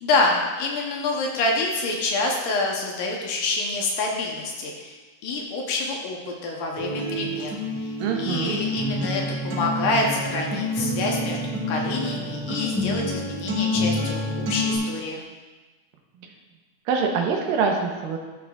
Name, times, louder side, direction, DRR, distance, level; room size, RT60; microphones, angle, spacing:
voice 1, 0.0-5.0 5.2-15.2, left 2 dB, 70° left, 0 dB, 2.3 m, -27 dB
Acoustic guitar, 6.8-14.8, left 1 dB, 50° right, 2.6 m, -28 dB
voice 2, 8.0-8.6 16.2-16.3 16.9-18.2, right 5 dB, 80° right, 2 dB, 2.5 m, -24 dB
13.0 x 6.6 x 2.4 m, 1.3 s
omnidirectional pair, 4.1 m